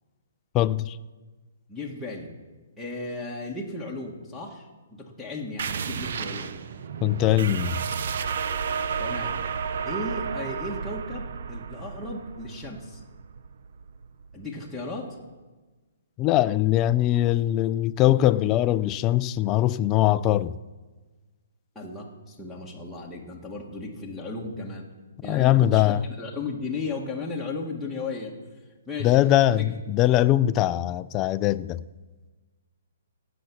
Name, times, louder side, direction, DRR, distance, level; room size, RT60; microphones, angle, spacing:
voice 1, 0.5-1.0 7.0-7.8 16.2-20.5 25.3-26.0 29.0-31.8, left 14 dB, 25° left, 0.4 m, -21 dB
voice 2, 1.7-2.3 2.8-6.5 9.0-9.4 9.9-13.0 14.3-15.2 21.8-24.9 25.2-28.4 28.9-29.7, left 3 dB, ahead, 1.7 m, -35 dB
sound 1, 5.6-14.8, right 6 dB, 60° right, 0.7 m, -32 dB
17.5 x 7.0 x 6.2 m
hypercardioid pair, 150°, 0 cm